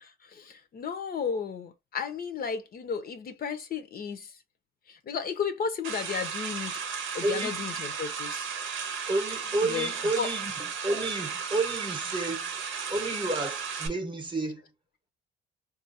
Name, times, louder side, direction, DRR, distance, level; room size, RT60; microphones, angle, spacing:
voice 1, 0.0-4.4 4.9-6.8 7.1-8.5 9.6-10.3, left 6 dB, 50° left, 0.6 m, -34 dB
sound 1, 5.8-13.9, right 6 dB, 85° right, 0.7 m, -35 dB
voice 2, 7.2-7.6 9.1-10.5 10.8-12.5 12.9-14.6, right 2 dB, 25° right, 0.8 m, -30 dB
3.6 x 2.4 x 2.7 m
cardioid pair, 90°, 20 cm